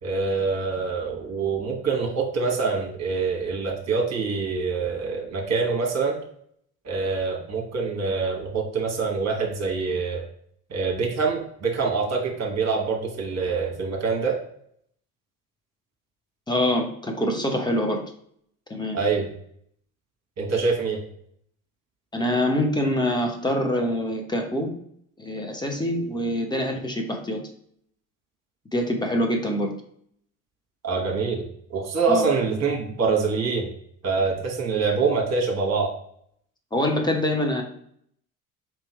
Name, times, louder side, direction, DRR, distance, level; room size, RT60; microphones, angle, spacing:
voice 1, 0.0-6.2 6.8-10.2 10.7-14.4 18.9-19.3 20.4-21.0 30.8-33.7 34.0-35.9, right 4 dB, 35° right, 1 dB, 1.3 m, -25 dB
voice 2, 16.5-18.0 18.7-19.0 22.1-24.7 25.2-27.4 28.7-29.7 32.1-32.3 36.7-37.6, left 1 dB, 10° left, 2 dB, 0.9 m, -25 dB
4.6 x 3.0 x 3.1 m, 0.67 s
figure-of-eight pair, 55°, 45 cm